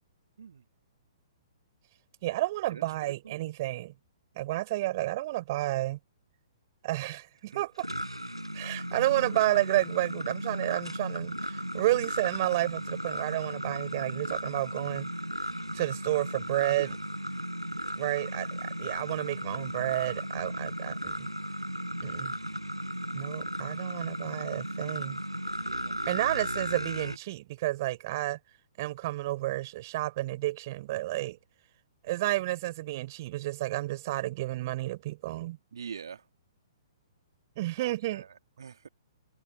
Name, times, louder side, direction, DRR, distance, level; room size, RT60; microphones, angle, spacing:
voice 1, 2.2-3.9 4.3-6.0 6.8-7.9 8.5-15.1 15.7-17.0 17.9-21.3 22.0-22.3 23.1-25.2 26.1-28.4 28.8-31.4 32.0-35.6 37.6-38.2, right 17 dB, 40° right, 4.4 m, -31 dB
sound 1, 7.5-27.2, equal, 90° right, 5.0 m, -36 dB
voice 2, 25.6-26.1 35.7-36.2 37.8-38.3 38.6-38.9, right 7 dB, 60° right, 2.6 m, -44 dB
figure-of-eight pair, 120°, 3 cm